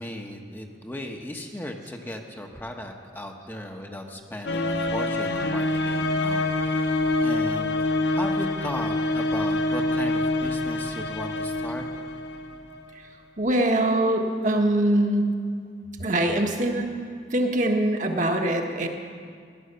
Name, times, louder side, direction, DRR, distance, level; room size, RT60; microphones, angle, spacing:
voice 1, 0.0-11.8, left 1 dB, 10° left, 2 dB, 1.0 m, -36 dB
sound 1, 4.5-12.8, left 2 dB, 90° left, 0.9 m, -26 dB
voice 2, 13.4-15.3 16.0-16.9 17.3-18.9, right 1 dB, 45° right, 2 dB, 1.3 m, -23 dB
16.5 x 11.0 x 6.8 m, 2.1 s
head